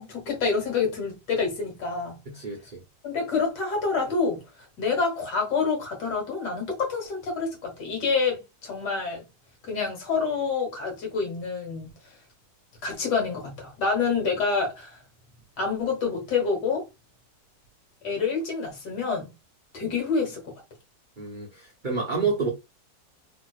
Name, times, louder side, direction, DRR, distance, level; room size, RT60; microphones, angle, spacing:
voice 1, 0.0-2.2 3.0-4.4 4.8-9.2 9.6-11.9 12.8-15.0 15.6-16.8 18.0-19.3 19.7-20.5 22.1-22.3, left 4 dB, 70° left, 1.9 m, -27 dB
voice 2, 2.3-2.8 21.2-22.5, right 4 dB, 60° right, 0.5 m, -29 dB
3.3 x 3.0 x 2.3 m
omnidirectional pair, 2.0 m